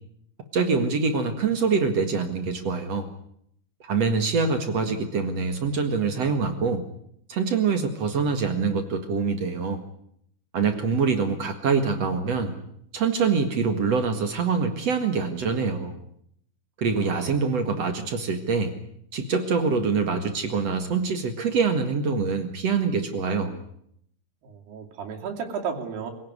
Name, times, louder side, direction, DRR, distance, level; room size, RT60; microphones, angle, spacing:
voice 1, 0.5-3.1 3.8-6.8 7.3-9.8 10.5-12.6 12.9-16.0 16.8-18.7 19.1-23.6, right 5 dB, 50° right, 7 dB, 2.5 m, -25 dB
voice 2, 24.4-26.1, right 6 dB, 85° right, 2 dB, 4.8 m, -33 dB
25.0 x 17.0 x 9.6 m, 0.71 s
omnidirectional pair, 4.5 m